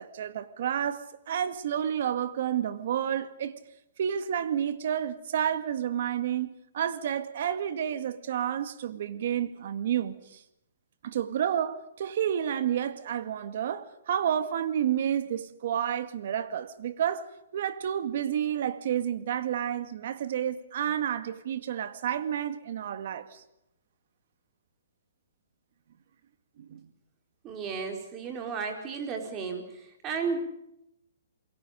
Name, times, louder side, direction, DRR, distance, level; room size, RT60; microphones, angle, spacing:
voice 1, 0.0-3.5 4.0-10.4 11.0-17.3 17.5-23.4 26.7-26.9, right 9 dB, 55° right, 2.0 m, -30 dB
voice 2, 27.4-30.4, right 5 dB, 20° right, 4.4 m, -33 dB
28.0 x 22.5 x 5.2 m
hypercardioid pair, 160°, 0 cm